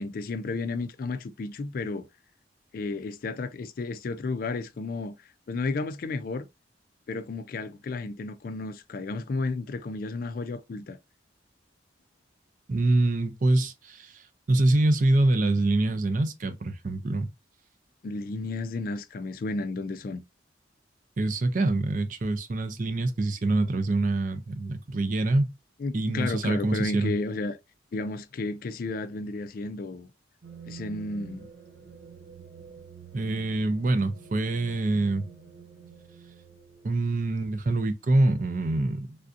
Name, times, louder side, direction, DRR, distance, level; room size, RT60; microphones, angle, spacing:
voice 1, 0.0-2.1 2.7-5.2 5.5-6.5 7.1-11.0 18.0-20.2 25.8-27.6 27.9-30.1 30.7-31.5, left 3 dB, 50° left, 0.3 m, -32 dB
voice 2, 12.7-17.3 21.2-25.5 25.9-27.1 33.1-35.2 36.8-39.2, right 2 dB, 45° right, 0.5 m, -25 dB
sound 1, 30.4-36.9, right 6 dB, 85° right, 0.6 m, -48 dB
3.4 x 2.6 x 2.4 m
head